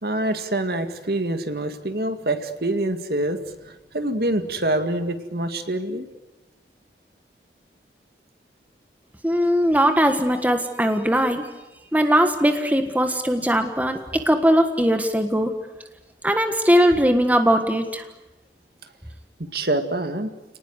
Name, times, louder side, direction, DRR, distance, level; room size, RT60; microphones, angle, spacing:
voice 1, 0.0-6.1 19.4-20.3, right 1 dB, 60° right, 7 dB, 2.1 m, -26 dB
voice 2, 9.2-11.5 11.9-15.5 16.2-18.0, equal, 10° right, 6 dB, 1.5 m, -20 dB
29.5 x 19.0 x 9.7 m, 1.1 s
head